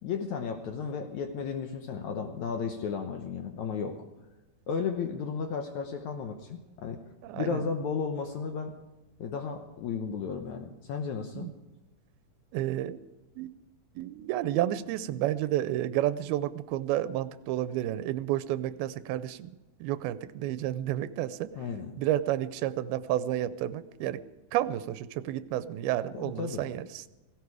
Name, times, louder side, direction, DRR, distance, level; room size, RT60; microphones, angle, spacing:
voice 1, 0.0-4.0 4.7-7.0 7.4-8.7 9.2-11.5 21.5-22.0 26.1-26.7, left 6 dB, 70° left, 5 dB, 1.9 m, -34 dB
voice 2, 7.2-7.6 11.4-11.5 12.5-13.0 13.4-13.5 14.0-19.5 19.8-21.5 22.0-24.2 24.5-27.0, right 13 dB, 90° right, 14 dB, 2.5 m, -31 dB
16.5 x 16.5 x 4.8 m, 1.1 s
omnidirectional pair, 4.3 m